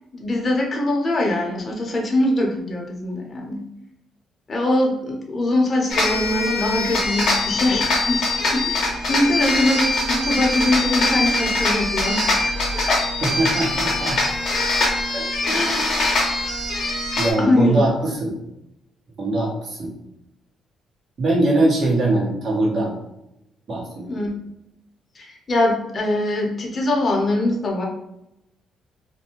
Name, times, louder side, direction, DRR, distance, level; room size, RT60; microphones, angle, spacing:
voice 1, 0.1-3.6 4.5-13.0 15.5-15.9 17.4-17.9 24.1-24.4 25.2-27.8, left 1 dB, 35° left, -1 dB, 0.7 m, -22 dB
sound 1, 5.9-17.3, left 2 dB, 65° left, 0.9 m, -22 dB
voice 2, 13.2-14.2 15.1-15.3 15.7-16.0 17.2-18.4 19.2-19.9 21.2-22.9 23.7-24.2, right 2 dB, 50° right, -3 dB, 1.1 m, -22 dB
2.5 x 2.2 x 2.9 m, 0.86 s
cardioid pair, 90°, 0 cm